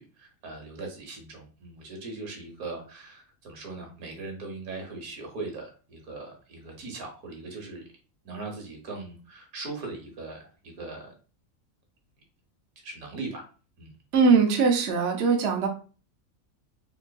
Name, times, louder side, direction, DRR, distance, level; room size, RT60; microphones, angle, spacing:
voice 1, 0.0-7.9 8.2-11.1 12.8-13.4 13.8-13.9, right 3 dB, 90° right, 2 dB, 1.6 m, -39 dB
voice 2, 14.1-15.7, right 5 dB, 60° right, 2 dB, 1.0 m, -21 dB
3.9 x 3.6 x 2.3 m, 0.36 s
omnidirectional pair, 1.5 m